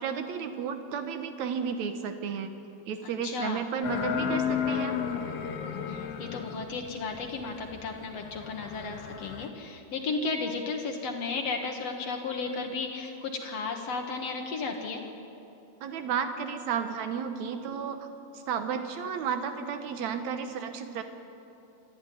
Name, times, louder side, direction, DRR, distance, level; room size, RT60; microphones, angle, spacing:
voice 1, 0.0-2.5 2.9-5.0 15.8-18.0 18.3-21.0, right 7 dB, 65° right, 7 dB, 2.0 m, -32 dB
voice 2, 3.0-3.7 5.9-15.0, left 4 dB, 55° left, 3 dB, 1.9 m, -34 dB
sound 1, 3.8-9.5, left 8 dB, 85° left, 1.3 m, -33 dB
26.5 x 12.5 x 9.4 m, 2.8 s
omnidirectional pair, 4.6 m